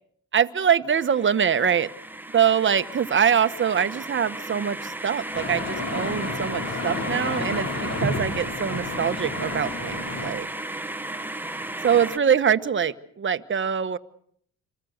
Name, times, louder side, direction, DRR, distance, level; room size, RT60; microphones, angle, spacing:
voice 1, 0.3-1.9 2.3-10.5 11.8-14.0, right 8 dB, 40° right, 12 dB, 1.3 m, -23 dB
sound 1, 0.9-12.2, right 1 dB, 5° right, 1.3 m, -35 dB
sound 2, 5.3-10.3, left 2 dB, 60° left, 5.7 m, -31 dB
27.0 x 24.0 x 6.6 m, 0.66 s
cardioid pair, 90°, 30 cm